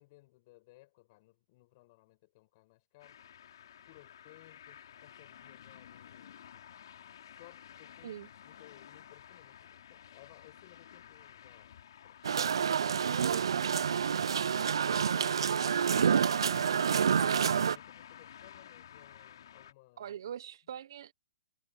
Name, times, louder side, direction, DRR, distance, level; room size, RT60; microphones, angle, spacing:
voice 1, 0.0-3.2 3.9-6.7 7.4-12.2 15.6-16.0 16.5-20.2, left 21 dB, 40° left, 7.9 m, -60 dB
sound 1, 3.0-19.7, left 9 dB, 65° left, 6.4 m, -53 dB
sound 2, 12.2-17.8, right 7 dB, 80° right, 0.3 m, -28 dB
voice 2, 13.2-13.7 20.0-21.1, right 9 dB, 60° right, 1.0 m, -42 dB
hypercardioid pair, 150°, 2 cm